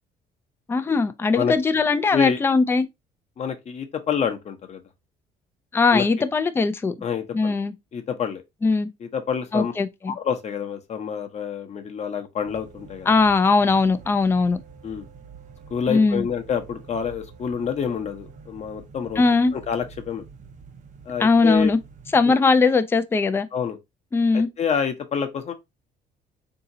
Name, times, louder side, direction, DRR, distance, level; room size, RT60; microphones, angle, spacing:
voice 1, 0.7-2.9 5.7-6.9 7.3-7.7 8.6-8.9 9.5-10.2 13.1-14.6 15.9-16.3 19.2-19.5 21.2-21.8 22.1-23.5 24.1-24.5, left 4 dB, 15° left, 0.3 m, -20 dB
voice 2, 3.4-4.8 5.9-6.1 7.0-7.5 7.9-8.4 9.0-9.7 10.1-13.1 14.8-15.0 15.7-19.2 19.5-20.3 21.0-21.8 22.2-22.3 23.5-23.8 24.3-25.5, left 7 dB, 40° left, 0.8 m, -27 dB
sound 1, 12.5-22.3, right 5 dB, 45° right, 0.7 m, -46 dB
3.8 x 2.8 x 2.6 m
cardioid pair, 110°, 17 cm